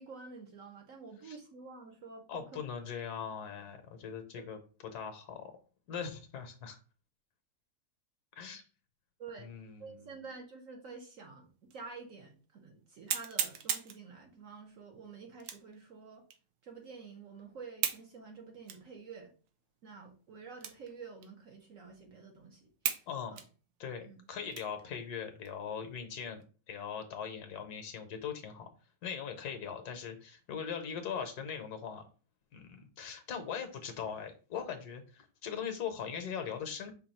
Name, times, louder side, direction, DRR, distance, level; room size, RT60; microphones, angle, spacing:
voice 1, 0.0-2.6 4.4-4.5 9.2-9.5 9.8-16.2 16.6-19.3 19.8-22.7 23.3-23.4 24.0-24.2, right 4 dB, 55° right, 2 dB, 1.0 m, -49 dB
voice 2, 2.3-5.5 5.9-6.8 8.4-8.6 9.4-10.2 23.1-23.4 23.8-28.7 29.0-32.0 32.5-36.9, left 7 dB, 65° left, 7 dB, 1.2 m, -40 dB
sound 1, 11.7-11.8 12.3-12.4 13.1-14.0 15.4-15.8 16.3-16.4 17.8-18.1 18.7-18.8 19.5-19.6 20.6-20.9 21.2-21.3 22.0-22.1 22.8-23.1 23.4-24.8 25.3-25.5 26.0-26.4, right 9 dB, 85° right, 1.3 m, -36 dB
5.2 x 2.3 x 4.2 m, 0.37 s
omnidirectional pair, 1.9 m